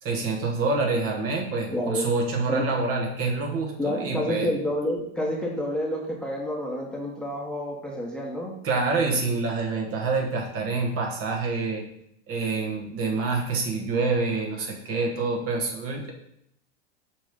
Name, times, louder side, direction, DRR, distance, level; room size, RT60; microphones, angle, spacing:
voice 1, 0.0-4.5 8.6-11.8 12.3-16.1, right 3 dB, 40° right, 0 dB, 1.4 m, -27 dB
voice 2, 1.7-2.1 2.5-2.6 3.8-8.5, left 1 dB, 5° left, -2 dB, 1.1 m, -29 dB
6.1 x 3.2 x 5.0 m, 0.75 s
hypercardioid pair, 105°, 33 cm